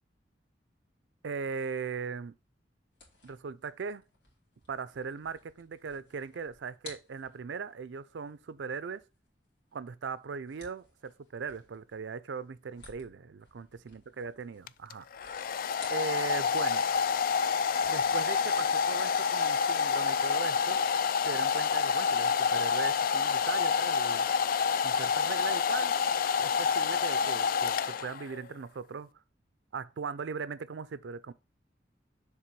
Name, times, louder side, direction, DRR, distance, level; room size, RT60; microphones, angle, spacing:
voice 1, 1.2-2.3 3.2-4.0 4.7-9.0 9.7-15.4 15.9-16.8 17.9-20.8 21.3-24.3 24.8-26.0 26.4-29.1 29.7-31.3, right 5 dB, 80° right, 0.5 m, -39 dB
sound 1, 2.9-16.6 16.9-19.4, left 3 dB, 80° left, 2.5 m, -57 dB
Domestic sounds home sounds, 14.7-28.4, left 6 dB, 50° left, 0.3 m, -28 dB
6.7 x 3.9 x 4.6 m
head